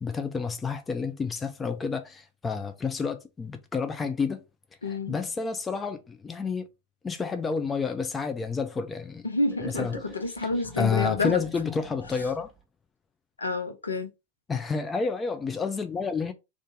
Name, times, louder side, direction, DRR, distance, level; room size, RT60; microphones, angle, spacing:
voice 1, 0.0-4.4 4.9-6.7 7.0-9.3 9.8-9.9 10.8-12.5 14.5-16.3, left 5 dB, 15° left, 0.4 m, -29 dB
voice 2, 4.8-5.2 9.2-11.4 13.4-14.1, left 3 dB, 75° left, 0.6 m, -29 dB
sound 1, 9.5-12.6, equal, 10° right, 0.9 m, -44 dB
2.5 x 2.4 x 3.6 m
figure-of-eight pair, 90°, 0 cm